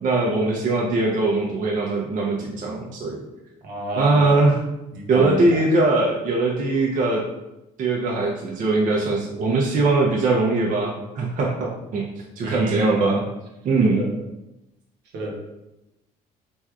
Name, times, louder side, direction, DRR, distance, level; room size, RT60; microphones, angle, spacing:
voice 1, 0.0-3.2 4.0-4.6 5.1-7.2 7.8-12.0 12.4-13.2 13.6-14.1, right 3 dB, 50° right, -3 dB, 0.5 m, -21 dB
voice 2, 3.6-4.3 4.9-5.6 12.4-13.1 13.8-14.1 15.1-15.3, right 1 dB, 75° right, -1 dB, 0.9 m, -29 dB
3.3 x 2.6 x 2.3 m, 0.95 s
supercardioid pair, 80°, 18 cm